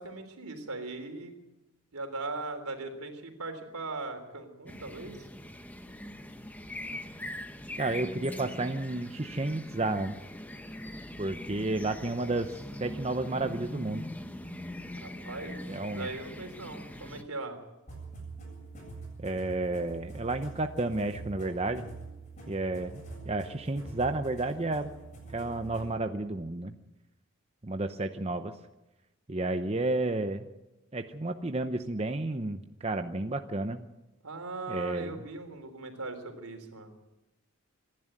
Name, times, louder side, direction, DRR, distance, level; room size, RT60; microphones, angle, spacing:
voice 1, 0.0-1.3 1.9-5.3 15.0-17.6 34.2-36.9, right 3 dB, 80° right, 6 dB, 3.6 m, -39 dB
sound 1, 4.7-17.2, left 1 dB, 5° left, 1.0 m, -42 dB
voice 2, 7.8-10.2 11.2-14.1 15.7-16.1 19.2-21.9 22.5-24.9 25.3-26.7 27.6-28.5 29.3-30.5 30.9-33.8 34.7-35.1, right 2 dB, 25° right, 8 dB, 0.7 m, -31 dB
sound 2, 17.9-25.9, right 3 dB, 30° left, 7.8 m, -45 dB
26.5 x 11.0 x 9.0 m, 1.0 s
head